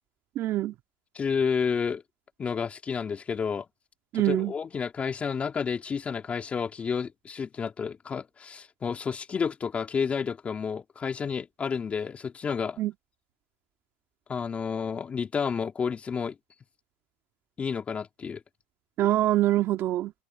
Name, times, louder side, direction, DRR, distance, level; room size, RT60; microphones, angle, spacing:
voice 1, 0.4-0.7 4.1-4.5 12.8-12.9 19.0-20.1, right 14 dB, 40° right, 2.1 m, -24 dB
voice 2, 1.1-2.0 2.4-3.6 4.1-12.8 14.3-16.3 17.6-18.4, left 6 dB, 20° left, 3.1 m, -30 dB
open air
supercardioid pair, 130°, 6 cm